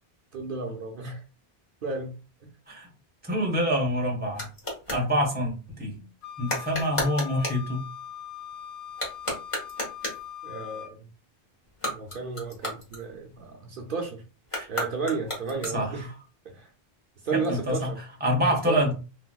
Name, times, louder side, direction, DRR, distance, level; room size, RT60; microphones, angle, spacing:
voice 1, 0.3-1.2 1.8-2.1 10.4-11.1 11.9-14.2 14.7-16.1 16.4-16.7 17.2-18.0 18.5-18.8, right 4 dB, 60° right, 1 dB, 0.8 m, -33 dB
voice 2, 3.2-4.5 4.9-5.5 5.8-6.0 6.4-7.8 14.5-14.7 15.6-15.9 17.3-17.9 18.2-18.9, equal, 10° right, 1 dB, 0.9 m, -26 dB
sound 1, 3.3-5.1 6.4-7.7 8.9-10.3 11.7-13.5 14.4-16.1, left 1 dB, 30° left, 1.2 m, -34 dB
Wind instrument woodwind instrument, 6.2-10.9, left 9 dB, 55° left, 0.4 m, -41 dB
3.4 x 2.7 x 2.2 m, 0.32 s
omnidirectional pair, 1.0 m